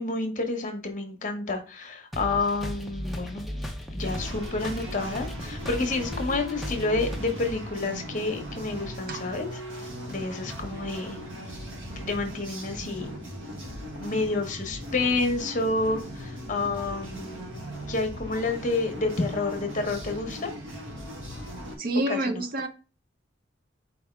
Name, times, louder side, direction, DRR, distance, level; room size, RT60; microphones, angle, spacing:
voice 1, 0.0-3.4 3.9-9.5 9.7-11.2 12.0-13.1 14.0-17.5 17.9-20.6 22.1-22.4, left 3 dB, 40° left, 5 dB, 1.0 m, -29 dB
sound 1, 2.1-7.5, equal, ahead, 0.6 m, -36 dB
sound 2, 4.0-21.8, equal, 85° right, 1.5 m, -38 dB
voice 2, 21.8-22.7, right 1 dB, 50° right, 8 dB, 0.6 m, -28 dB
4.4 x 3.5 x 3.3 m, 0.35 s
head